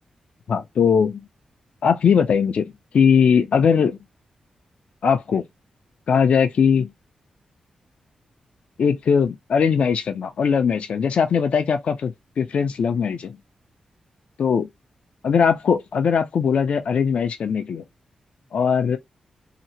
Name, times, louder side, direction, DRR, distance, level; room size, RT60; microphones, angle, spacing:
voice 1, 0.5-1.3 1.8-4.0 5.0-5.4 6.1-6.9 8.8-13.4 14.4-14.7 15.2-17.8 18.5-19.0, left 6 dB, 70° left, 0.5 m, -20 dB
2.9 x 2.1 x 2.7 m
cardioid pair, 75°, 2 cm